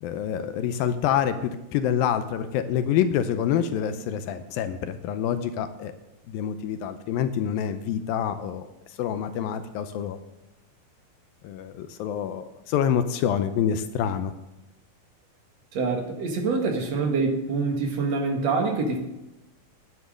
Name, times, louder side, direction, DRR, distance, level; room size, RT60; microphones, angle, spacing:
voice 1, 0.0-5.9 6.3-8.7 9.0-10.2 11.4-14.3, left 9 dB, 80° left, 10 dB, 2.4 m, -27 dB
voice 2, 15.7-19.0, right 4 dB, 50° right, 3 dB, 2.5 m, -25 dB
10.5 x 9.6 x 6.4 m, 0.95 s
omnidirectional pair, 4.3 m